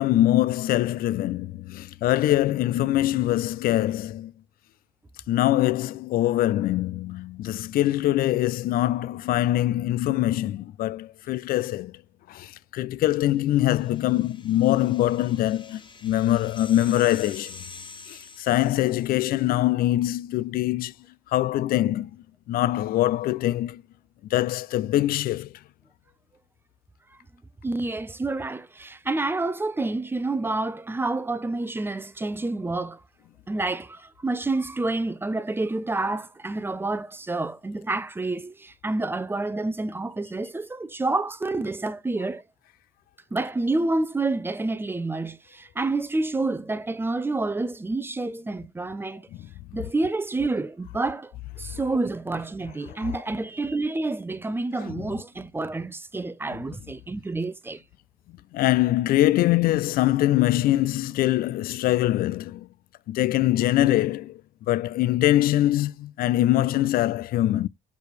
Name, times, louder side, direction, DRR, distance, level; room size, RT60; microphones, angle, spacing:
voice 1, 0.0-4.3 5.3-11.9 12.3-17.6 18.1-20.9 21.3-22.1 22.5-23.8 24.3-25.5 49.8-49.9 52.9-53.1 54.9-55.0 58.5-62.7 63.1-64.4 64.7-67.7, left 14 dB, 60° left, 0.4 m, -23 dB
sound 1, 13.4-19.4, left 4 dB, 30° left, 1.5 m, -46 dB
voice 2, 27.6-33.0 33.5-42.4 43.3-49.3 49.7-57.8, right 2 dB, 15° right, 0.6 m, -28 dB
6.9 x 4.6 x 3.1 m
cardioid pair, 110°, 17 cm